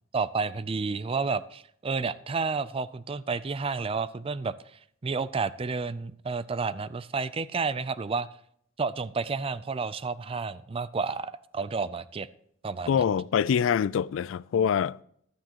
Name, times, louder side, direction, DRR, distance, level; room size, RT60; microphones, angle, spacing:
voice 1, 0.1-4.5 5.0-8.3 8.8-12.3 12.6-13.0, right 4 dB, 30° right, 0.4 m, -30 dB
voice 2, 12.9-15.0, left 7 dB, 85° left, 0.3 m, -25 dB
15.5 x 11.5 x 2.9 m
head